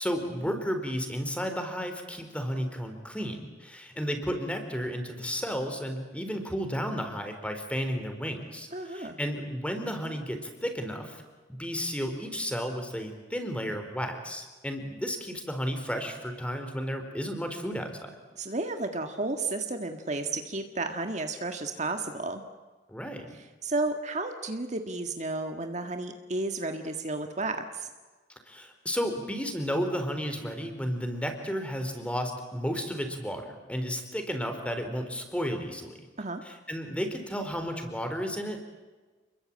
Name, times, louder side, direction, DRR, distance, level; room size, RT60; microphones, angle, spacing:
voice 1, 0.0-11.2 11.5-18.2 22.9-23.3 28.5-36.0 36.4-38.6, equal, 5° left, 6 dB, 4.1 m, -33 dB
voice 2, 8.7-9.2 18.4-22.4 23.3-27.9 36.2-36.4, right 2 dB, 40° right, 6 dB, 1.8 m, -32 dB
30.0 x 22.0 x 8.7 m, 1.3 s
head